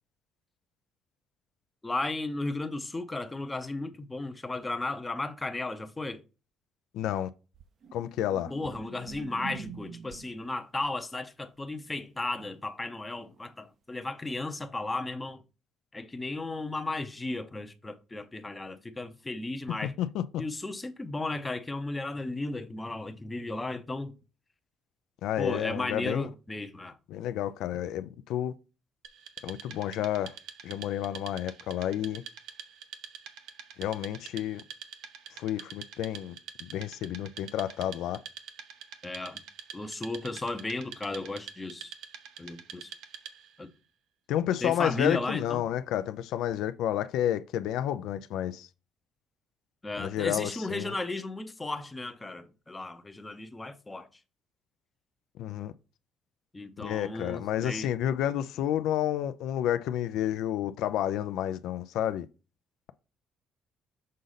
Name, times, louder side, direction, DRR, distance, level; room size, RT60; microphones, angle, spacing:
voice 1, 1.8-6.2 8.5-15.4 15.9-19.9 20.4-24.1 25.4-27.0 39.0-39.4 39.7-41.9 42.4-42.9 43.6-43.7 44.6-45.7 49.8-54.1 56.5-57.9, left 2 dB, 15° left, 0.6 m, -35 dB
voice 2, 6.9-7.3 7.9-8.5 19.8-20.4 25.2-26.3 27.1-28.5 29.4-30.4 30.6-32.2 33.8-34.6 35.4-36.4 36.6-38.2 44.3-48.7 50.0-50.9 55.4-55.7 56.8-62.3, left 11 dB, 80° left, 0.4 m, -30 dB
sound 1, 7.5-10.5 13.3-13.5, right 6 dB, 50° right, 0.5 m, -44 dB
Wood, 29.0-43.6, right 8 dB, 80° right, 0.7 m, -46 dB
6.4 x 3.9 x 4.0 m
cardioid pair, 140°, 0 cm